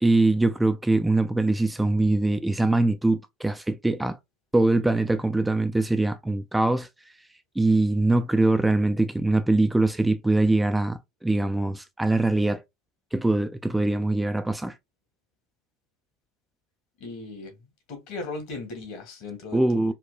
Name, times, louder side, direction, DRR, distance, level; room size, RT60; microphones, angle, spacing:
voice 1, 0.0-4.2 4.5-6.9 7.6-12.6 13.1-14.7 19.5-19.9, right 2 dB, 5° right, 0.3 m, -23 dB
voice 2, 17.0-17.6 17.9-19.9, left 3 dB, 60° left, 1.5 m, -37 dB
4.4 x 2.2 x 2.3 m
hypercardioid pair, 100°, 0 cm